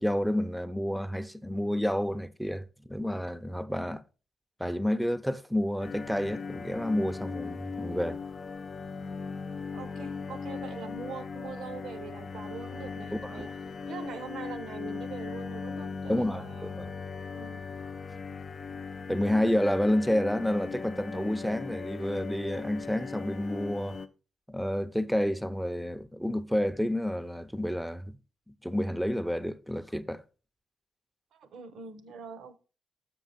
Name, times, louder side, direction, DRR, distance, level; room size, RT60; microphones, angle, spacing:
voice 1, 0.0-4.0 4.6-8.2 13.4-13.5 16.1-16.4 16.8-16.9 19.1-24.0 24.5-28.2 28.6-30.2, equal, ahead, 0.6 m, -29 dB
sound 1, 5.8-24.1, left 5 dB, 50° left, 0.5 m, -39 dB
voice 2, 9.7-13.5 13.9-16.8 17.3-17.7 31.3-32.6, right 5 dB, 75° right, 0.7 m, -43 dB
7.2 x 5.4 x 4.0 m
supercardioid pair, 65°, 0 cm